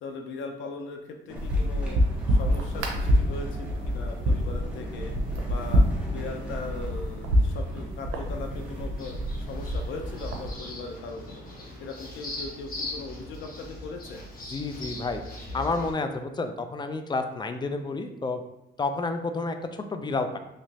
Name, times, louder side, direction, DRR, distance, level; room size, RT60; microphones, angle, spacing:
voice 1, 0.0-2.0 2.3-5.1 5.5-5.8 6.1-14.2, left 3 dB, 75° left, 3 dB, 0.5 m, -39 dB
sound 1, 1.3-11.9, equal, 5° right, 0.9 m, -42 dB
sound 2, 1.4-10.5, equal, 90° right, 0.6 m, -27 dB
sound 3, 9.0-15.9, left 1 dB, 45° left, 1.1 m, -40 dB
voice 2, 14.5-15.2 15.5-18.4 18.8-20.4, left 3 dB, 20° left, 7 dB, 0.4 m, -30 dB
3.1 x 3.0 x 2.8 m, 0.88 s
cardioid pair, 90°, 20 cm